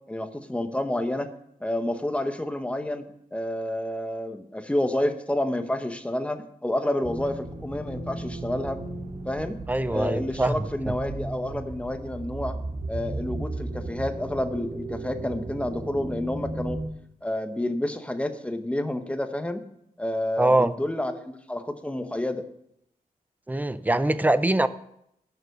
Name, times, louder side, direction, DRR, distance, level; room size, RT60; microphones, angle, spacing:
voice 1, 0.1-1.3 1.6-3.0 3.3-8.8 9.2-9.6 9.9-12.6 12.9-16.8 17.2-19.6 20.0-22.4, left 1 dB, 10° left, 8 dB, 0.8 m, -29 dB
sound 1, 7.0-16.9, right 2 dB, 65° right, 2.0 m, -35 dB
voice 2, 9.7-10.7 20.4-20.7 23.5-24.7, right 2 dB, 10° right, 14 dB, 0.4 m, -23 dB
11.0 x 6.9 x 6.5 m, 0.77 s
wide cardioid pair, 160°, 15 cm